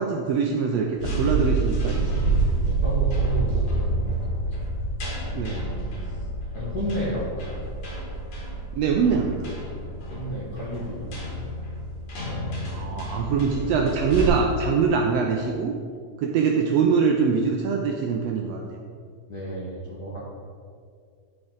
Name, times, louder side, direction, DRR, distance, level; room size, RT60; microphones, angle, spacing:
voice 1, 0.0-2.2 5.3-5.8 8.8-9.5 12.7-15.7 16.2-18.8, right 5 dB, 80° right, 1 dB, 1.5 m, -23 dB
sound 1, 0.9-14.3, right 3 dB, 80° left, 3.4 m, -28 dB
voice 2, 2.6-4.2 4.4-4.6 6.0-6.2 6.5-7.6 9.7-11.2 12.3-12.7 19.3-20.2, equal, 45° left, -6 dB, 1.3 m, -32 dB
11.5 x 4.8 x 3.9 m, 2.1 s
omnidirectional pair, 3.4 m